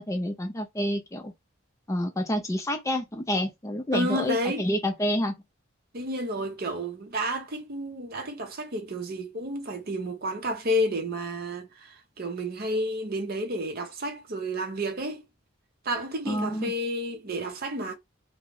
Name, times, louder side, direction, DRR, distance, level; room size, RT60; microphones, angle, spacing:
voice 1, 0.0-1.3 1.9-5.3 16.2-16.7, left 1 dB, 15° left, 0.4 m, -28 dB
voice 2, 3.9-4.6 5.9-15.2 15.8-17.9, equal, 45° right, 0.6 m, -31 dB
2.3 x 2.0 x 3.6 m
head